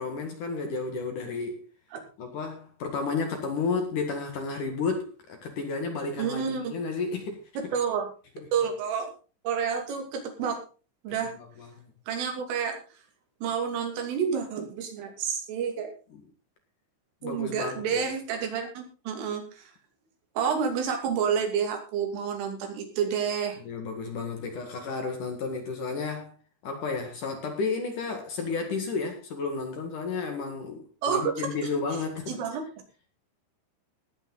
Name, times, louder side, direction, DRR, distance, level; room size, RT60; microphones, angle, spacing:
voice 1, 0.0-1.6 2.2-7.4 8.4-8.5 11.6-11.9 17.2-18.0 23.6-26.3 26.6-32.3, left 4 dB, 55° left, 2.7 m, -32 dB
voice 2, 6.2-6.7 7.6-8.1 8.5-9.1 9.5-10.6 11.0-11.3 12.1-12.8 13.4-15.9 17.2-19.7 20.4-23.6 31.0-31.3 32.3-32.6, right 7 dB, 85° right, 5.4 m, -29 dB
19.0 x 9.0 x 3.9 m
omnidirectional pair, 5.6 m